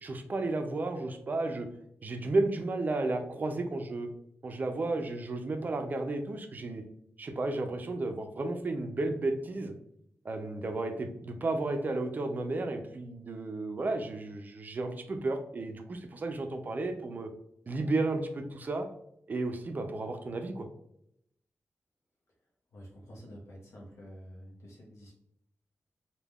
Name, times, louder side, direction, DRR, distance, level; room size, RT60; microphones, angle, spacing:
voice 1, 0.0-1.7 2.0-4.1 4.4-6.8 7.2-9.8 10.2-17.3 17.7-18.9 19.3-20.7, right 2 dB, 35° right, 6 dB, 0.3 m, -33 dB
voice 2, 22.7-25.1, equal, 80° left, -3 dB, 0.7 m, -49 dB
3.4 x 2.1 x 2.3 m, 0.76 s
wide cardioid pair, 155°, 5 cm